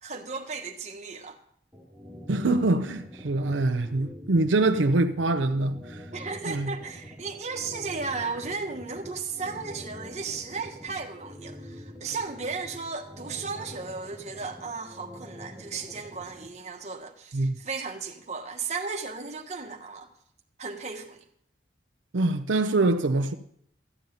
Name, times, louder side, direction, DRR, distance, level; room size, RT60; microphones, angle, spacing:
voice 1, 0.0-1.4 6.1-20.1 20.6-21.2, right 4 dB, 35° right, 1.3 m, -35 dB
sound 1, 1.7-16.5, equal, 5° right, 2.3 m, -45 dB
voice 2, 2.3-6.1 6.5-6.7 17.3-17.5 22.1-23.3, right 2 dB, 90° right, 0.7 m, -24 dB
13.5 x 5.5 x 9.1 m
head